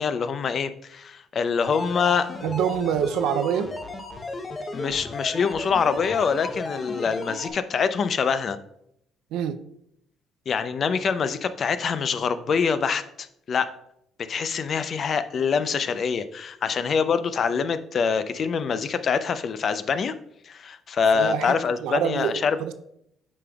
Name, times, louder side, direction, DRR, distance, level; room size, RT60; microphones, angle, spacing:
voice 1, 0.0-2.3 4.7-8.6 10.5-13.7 14.3-20.1 20.5-22.6, left 6 dB, 50° left, 12 dB, 0.5 m, -25 dB
sound 1, 1.6-7.5, left 2 dB, 25° left, 0.8 m, -35 dB
voice 2, 2.4-3.7 9.3-9.6 21.1-22.7, right 8 dB, 85° right, 10 dB, 0.4 m, -26 dB
8.4 x 5.2 x 2.3 m, 0.75 s
cardioid pair, 95°, 0 cm